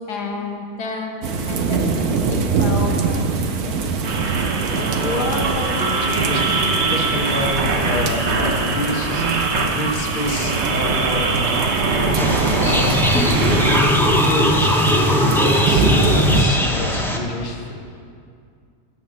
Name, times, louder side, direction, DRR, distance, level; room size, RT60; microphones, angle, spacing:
voice 1, 0.1-1.1 1.5-4.3, left 3 dB, 80° left, 1 dB, 1.6 m, -31 dB
sound 1, 1.2-16.4, right 4 dB, 70° right, 1.2 m, -25 dB
sound 2, 4.0-13.8, right 3 dB, 50° right, 1.0 m, -22 dB
voice 2, 4.7-11.4 12.0-13.0 13.3-13.7 14.0-17.7, left 1 dB, 35° left, 0 dB, 1.1 m, -27 dB
sound 3, 12.2-17.2, equal, 5° left, 0.3 m, -18 dB
12.5 x 4.3 x 7.5 m, 2.3 s
omnidirectional pair, 1.7 m